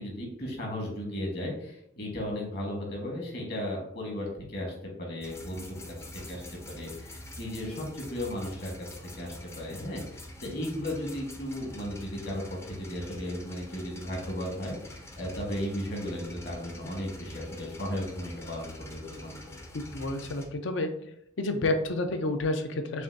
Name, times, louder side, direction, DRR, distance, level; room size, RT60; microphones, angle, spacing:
voice 1, 0.0-6.4 6.7-8.7 9.1-19.6, left 1 dB, 55° left, -1 dB, 1.4 m, -35 dB
sound 1, 5.2-20.5, left 1 dB, 15° left, 0.4 m, -45 dB
voice 2, 19.7-20.9 21.4-23.0, left 2 dB, 75° left, 7 dB, 0.5 m, -29 dB
6.7 x 2.5 x 2.7 m, 0.75 s
head